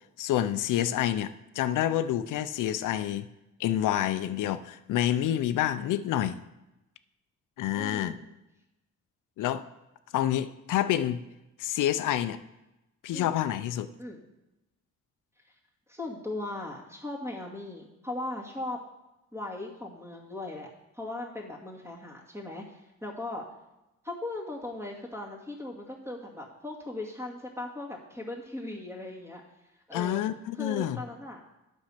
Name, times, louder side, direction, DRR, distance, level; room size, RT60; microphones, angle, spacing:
voice 1, 0.2-1.3 1.6-3.3 3.6-6.4 7.6-8.2 9.4-9.6 10.1-11.2 11.6-12.4 13.0-13.9 29.9-31.0, left 12 dB, 90° left, 0.5 m, -28 dB
voice 2, 7.8-8.3 13.1-13.3 14.0-14.2 15.9-18.8 19.3-20.7 20.9-23.4 24.0-29.4 29.9-30.2 30.5-31.4, left 2 dB, 10° right, 2.3 m, -38 dB
8.9 x 6.4 x 5.7 m
cardioid pair, 90°, 30 cm